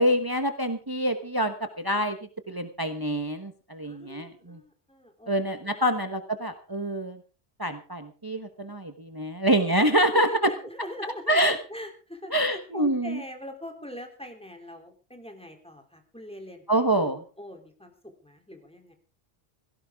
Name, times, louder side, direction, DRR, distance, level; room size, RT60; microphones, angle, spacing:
voice 1, 0.0-2.2 2.5-4.6 5.3-7.2 7.6-10.3 11.3-11.6 12.3-13.2 16.7-17.2, right 1 dB, 20° right, 7 dB, 1.2 m, -26 dB
voice 2, 3.8-5.3 5.6-6.0 10.1-18.9, left 1 dB, 5° left, 4 dB, 3.3 m, -42 dB
17.5 x 17.0 x 3.6 m, 0.37 s
omnidirectional pair, 1.1 m